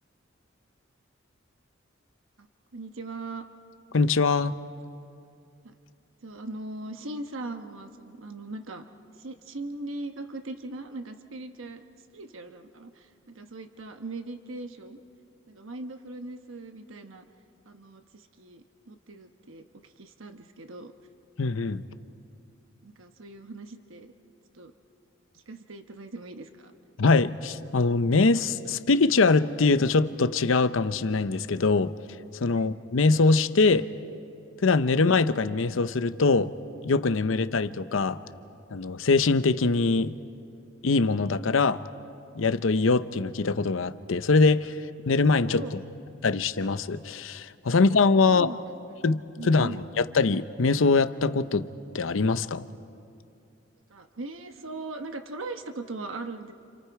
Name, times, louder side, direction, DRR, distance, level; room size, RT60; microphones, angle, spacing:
voice 1, 2.7-3.4 5.6-5.7 6.2-8.8 9.1-11.8 12.1-15.0 15.5-17.2 17.6-20.9 22.8-24.1 24.5-24.7 25.3-26.7 32.5-32.7 45.4-45.8 47.7-47.8 48.3-48.7 49.4-49.8 53.9-56.5, right 2 dB, 90° right, 7 dB, 1.1 m, -40 dB
voice 2, 3.9-4.5 21.4-21.8 27.0-31.9 32.4-33.9 34.6-36.5 36.8-38.2 38.7-40.1 40.8-41.8 42.4-44.7 45.1-45.6 46.2-48.5 49.0-49.7 50.1-51.7 51.9-52.6, left 3 dB, 85° left, 12 dB, 0.7 m, -23 dB
30.0 x 27.5 x 4.8 m, 2.5 s
head